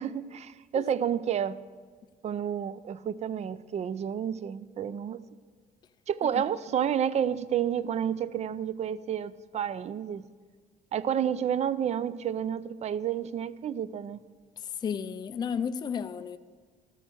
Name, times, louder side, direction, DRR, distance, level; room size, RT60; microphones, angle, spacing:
voice 1, 0.0-1.6 2.2-5.2 6.1-10.3 10.9-14.2, right 9 dB, 40° right, 0.4 m, -30 dB
voice 2, 14.6-16.4, left 7 dB, 25° left, 0.4 m, -33 dB
13.0 x 6.3 x 7.5 m
cardioid pair, 110°, 17 cm